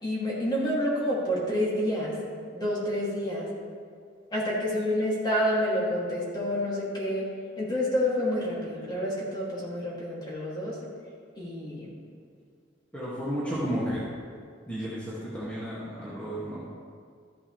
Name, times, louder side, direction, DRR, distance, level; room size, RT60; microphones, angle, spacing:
voice 1, 0.0-2.1 2.5-3.5 4.3-7.2 7.6-10.7 11.4-11.9, equal, 25° left, -6 dB, 2.6 m, -28 dB
voice 2, 12.9-14.0 14.7-16.6, equal, 10° left, -10 dB, 2.1 m, -32 dB
14.0 x 7.7 x 3.3 m, 2.3 s
head